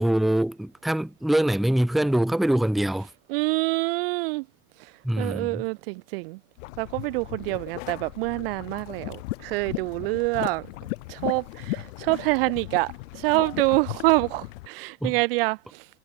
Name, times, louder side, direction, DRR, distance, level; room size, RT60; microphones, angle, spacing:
voice 1, 0.0-3.1 5.0-5.6 15.0-15.1, right 1 dB, ahead, 0.6 m, -24 dB
voice 2, 3.3-4.4 4.8-4.9 5.2-6.4 6.8-10.7 11.1-15.9, right 25 dB, 45° right, 0.4 m, -26 dB
sound 1, 6.6-14.7, left 22 dB, 55° left, 1.7 m, -36 dB
hypercardioid pair, 115°, 44 cm